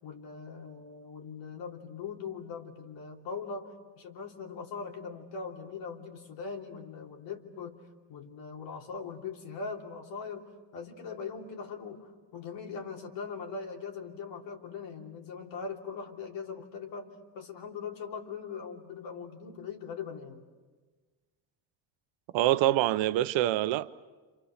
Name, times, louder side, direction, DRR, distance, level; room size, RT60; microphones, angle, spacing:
voice 1, 0.0-20.4, left 5 dB, 75° left, 3.3 m, -41 dB
voice 2, 22.3-23.9, right 14 dB, 75° right, 0.9 m, -25 dB
29.5 x 28.0 x 6.6 m
cardioid pair, 125°, 45 cm